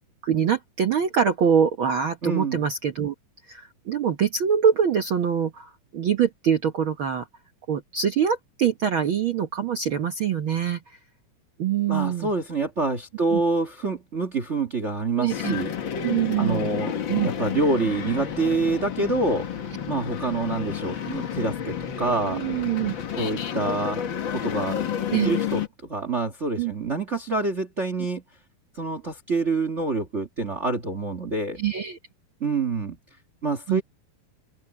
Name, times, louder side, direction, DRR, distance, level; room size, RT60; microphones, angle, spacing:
voice 1, 0.2-3.1 3.5-7.3 7.7-11.0 11.6-12.3 13.3-13.4 15.2-15.5 16.0-16.7 17.1-17.3 22.3-22.9 25.1-25.3 26.6-26.7 31.6-32.0 33.7-33.8, right 8 dB, 80° right, 1.1 m, -24 dB
voice 2, 2.2-2.6 11.9-15.7 16.4-19.5 19.9-22.4 23.2-28.2 28.7-31.6 32.4-33.0 33.4-33.8, right 3 dB, 60° right, 0.7 m, -27 dB
sound 1, 15.3-25.7, left 9 dB, 50° left, 1.6 m, -30 dB
open air
omnidirectional pair, 4.1 m